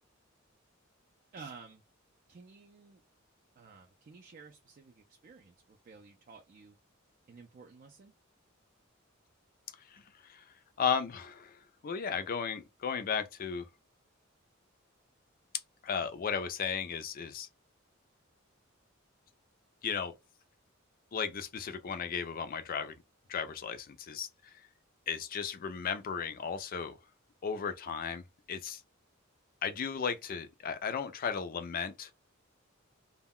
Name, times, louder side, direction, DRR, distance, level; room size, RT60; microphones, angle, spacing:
voice 1, 1.3-1.8 2.3-3.0 3.6-6.8 7.3-8.1, right 4 dB, 40° right, 0.4 m, -52 dB
voice 2, 9.9-10.4 10.8-13.7 15.8-17.5 19.8-20.1 21.1-23.0 23.3-24.3 25.1-26.9 27.4-28.8 29.6-32.1, left 6 dB, 45° left, 0.4 m, -35 dB
2.2 x 2.1 x 3.6 m
head